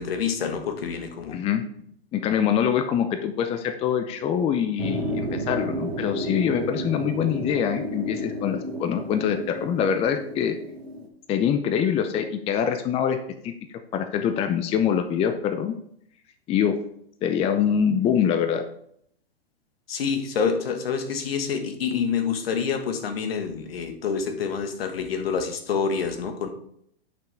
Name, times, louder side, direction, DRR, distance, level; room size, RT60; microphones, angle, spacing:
voice 1, 0.0-1.4 19.9-26.5, left 6 dB, 65° left, 6 dB, 1.6 m, -27 dB
voice 2, 1.3-1.6 2.1-10.6 11.3-13.2 13.4-13.5 13.9-15.8 16.5-16.8 17.2-18.6, left 8 dB, 20° left, 8 dB, 0.5 m, -24 dB
sound 1, 4.8-11.1, equal, 75° right, 1.7 m, -32 dB
10.0 x 5.9 x 3.4 m, 0.69 s
hypercardioid pair, 115°, 31 cm